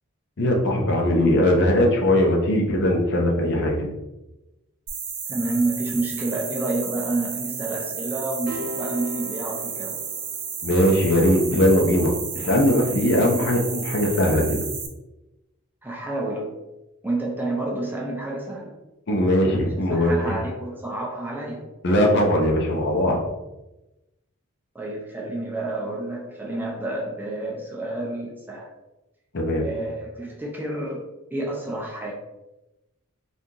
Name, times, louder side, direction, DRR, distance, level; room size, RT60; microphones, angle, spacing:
voice 1, 0.4-3.9 10.6-14.7 19.1-20.3 21.8-23.2 29.3-29.6, left 1 dB, 50° left, 1 dB, 0.6 m, -20 dB
sound 1, 4.9-14.9, right 6 dB, 85° right, 0.7 m, -32 dB
voice 2, 5.3-10.0 12.8-13.1 15.8-16.6 17.0-18.8 19.9-21.7 24.7-28.7 29.6-32.1, right 2 dB, 10° right, -2 dB, 0.4 m, -29 dB
sound 2, 8.5-10.9, equal, 45° right, 0.7 m, -37 dB
2.8 x 2.5 x 3.7 m, 0.98 s
head